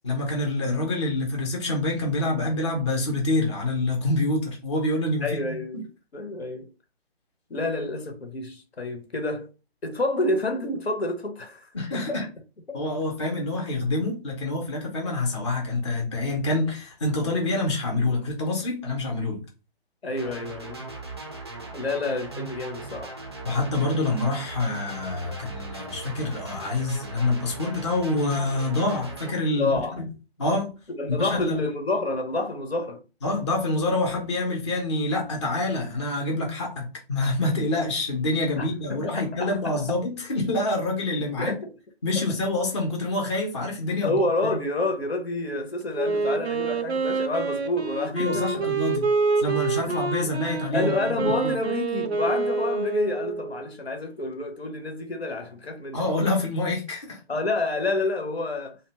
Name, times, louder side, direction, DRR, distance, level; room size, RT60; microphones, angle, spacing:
voice 1, 0.0-5.8 11.7-12.3 12.7-19.4 23.4-30.1 30.4-30.7 31.1-31.6 33.2-41.5 42.0-44.6 48.1-49.0 49.4-51.0 51.4-51.6 55.9-57.2, left 2 dB, 30° left, 0.6 m, -26 dB
voice 2, 5.2-5.8 6.1-6.7 7.5-9.5 9.8-12.2 12.7-12.8 17.9-18.1 20.0-20.9 21.7-23.2 29.5-30.0 31.0-33.0 38.6-40.0 41.4-41.7 42.1-42.2 44.0-48.7 49.8-49.9 50.7-56.1 57.3-58.8, left 2 dB, 75° left, 0.8 m, -29 dB
sound 1, 20.2-29.3, right 3 dB, 25° right, 0.4 m, -39 dB
Wind instrument woodwind instrument, 45.9-53.7, right 4 dB, 85° right, 0.6 m, -27 dB
2.7 x 2.2 x 2.8 m
figure-of-eight pair, 140°, 31 cm